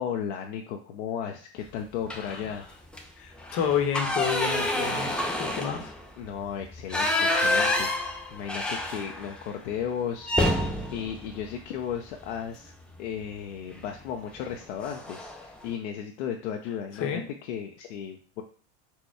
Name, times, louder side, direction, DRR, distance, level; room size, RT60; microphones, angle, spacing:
voice 1, 0.0-2.6 6.2-10.3 10.9-12.7 13.0-18.4, left 8 dB, 80° left, 2 dB, 0.6 m, -35 dB
sound 1, 2.1-2.5 2.9-3.0 3.4-9.4 9.7-9.8 10.2-12.4 13.7-14.0 14.4-14.5 14.8-15.4, left 1 dB, 5° left, 0.3 m, -28 dB
voice 2, 3.2-5.9 17.0-17.2, left 7 dB, 40° left, 6 dB, 0.9 m, -30 dB
4.3 x 2.2 x 4.6 m, 0.42 s
supercardioid pair, 125°, 34 cm